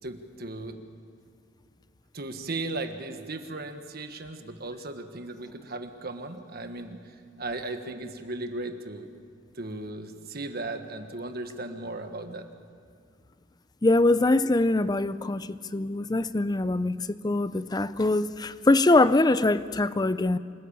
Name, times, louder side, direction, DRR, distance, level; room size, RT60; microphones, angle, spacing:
voice 1, 0.0-0.8 2.1-9.1 9.5-12.5, right 2 dB, 50° right, 1.5 m, -36 dB
voice 2, 13.8-20.4, left 2 dB, 20° left, 0.5 m, -23 dB
26.0 x 14.0 x 8.8 m
head